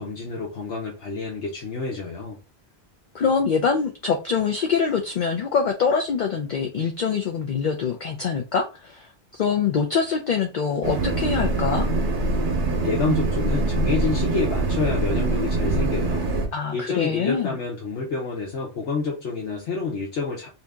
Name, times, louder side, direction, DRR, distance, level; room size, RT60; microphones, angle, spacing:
voice 1, 0.0-2.4 12.8-16.3 16.7-20.5, left 4 dB, 80° left, 1.2 m, -28 dB
voice 2, 3.1-11.9 16.5-17.6, left 6 dB, 55° left, 0.5 m, -24 dB
sound 1, 10.8-16.5, right 2 dB, 50° right, 0.9 m, -24 dB
2.7 x 2.6 x 3.4 m
omnidirectional pair, 1.1 m